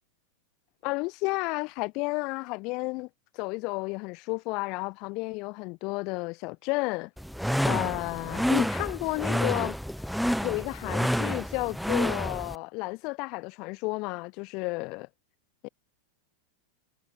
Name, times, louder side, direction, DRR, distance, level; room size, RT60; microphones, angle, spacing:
voice 1, 0.8-3.1 3.3-7.1 7.6-9.8 10.4-15.1 15.6-15.7, left 27 dB, 40° left, 0.9 m, -32 dB
sound 1, 7.2-12.5, equal, ahead, 2.2 m, -29 dB
figure-of-eight pair, 90°, 0 cm